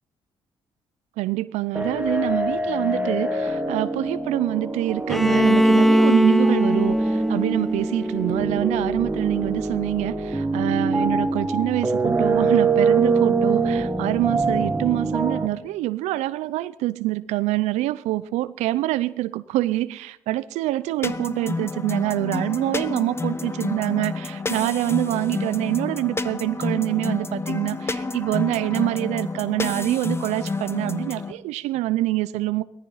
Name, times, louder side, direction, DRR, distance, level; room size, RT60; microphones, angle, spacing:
voice 1, 1.2-32.6, right 16 dB, 85° right, 0.5 m, -25 dB
sound 1, 1.7-15.5, right 3 dB, 15° right, 1.7 m, -24 dB
Bowed string instrument, 5.1-8.9, equal, ahead, 0.5 m, -20 dB
sound 2, 21.0-31.3, left 3 dB, 20° left, 1.2 m, -29 dB
17.0 x 14.0 x 5.6 m
cardioid pair, 80°, 11 cm